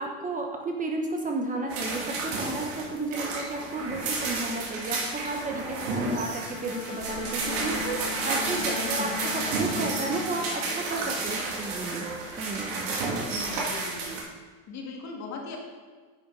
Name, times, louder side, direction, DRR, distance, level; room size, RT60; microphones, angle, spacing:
voice 1, 0.0-12.1 12.4-12.9 13.3-13.5, right 2 dB, 20° right, 2 dB, 1.1 m, -33 dB
sound 1, 1.7-14.2, right 3 dB, 70° right, 2.3 m, -31 dB
Bowed string instrument, 6.3-11.0, left 6 dB, 75° left, 2.1 m, -38 dB
voice 2, 8.7-9.2 13.4-14.2 14.7-15.6, left 3 dB, 40° left, 0 dB, 2.1 m, -39 dB
10.0 x 6.6 x 4.0 m, 1.5 s
hypercardioid pair, 95°, 40 cm